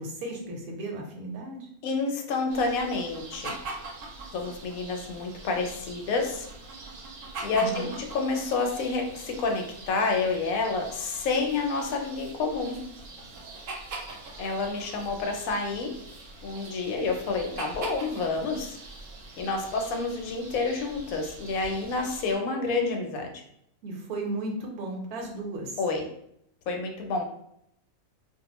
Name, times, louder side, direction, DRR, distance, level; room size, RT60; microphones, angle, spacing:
voice 1, 0.0-1.7 7.5-7.9 23.8-25.8, right 2 dB, 85° right, 1 dB, 1.2 m, -35 dB
voice 2, 1.8-3.5 4.3-6.5 7.4-12.8 14.4-15.9 16.4-18.8 19.4-23.3 25.8-26.0 26.7-27.2, left 3 dB, 75° left, 3 dB, 1.0 m, -29 dB
sound 1, 2.5-22.4, right 2 dB, 65° right, 0.9 m, -43 dB
2.5 x 2.2 x 2.9 m, 0.72 s
omnidirectional pair, 1.5 m